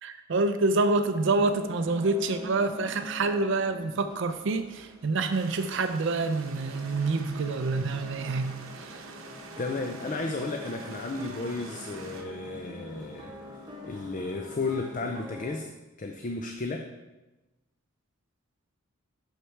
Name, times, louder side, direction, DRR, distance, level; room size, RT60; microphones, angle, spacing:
voice 1, 0.0-9.0, right 3 dB, 60° right, 9 dB, 0.4 m, -27 dB
sound 1, 1.1-15.6, left 1 dB, 20° right, 1.1 m, -45 dB
sound 2, 5.3-12.2, right 4 dB, 80° right, 0.8 m, -46 dB
voice 2, 9.6-13.3 13.8-15.7 16.0-16.9, left 3 dB, 35° left, 4 dB, 0.5 m, -33 dB
6.5 x 6.5 x 4.5 m, 1.1 s
head